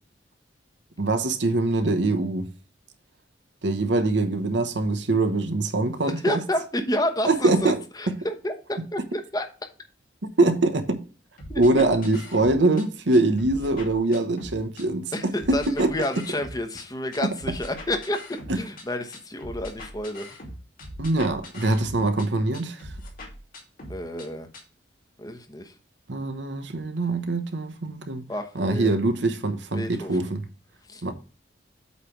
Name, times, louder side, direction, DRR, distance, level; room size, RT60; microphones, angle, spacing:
voice 1, 1.0-2.5 3.6-6.4 7.3-7.8 10.4-11.0 11.6-15.1 15.5-15.9 17.2-17.3 21.0-22.9 26.1-28.3 28.5-30.4 31.0-31.1, right 2 dB, 70° right, 1.0 m, -23 dB
voice 2, 6.1-9.0 9.3-9.4 11.5-11.6 15.1-20.4 23.9-24.5 25.2-25.8 28.3-28.9 29.7-30.3 30.9-31.0, left 1 dB, 20° left, 1.0 m, -30 dB
sound 1, 11.4-12.8 13.1-14.8 15.1-16.8 17.1-18.8 19.1-22.3 22.5-24.3 24.5-24.6, left 1 dB, 50° left, 2.7 m, -41 dB
8.3 x 3.3 x 5.8 m
head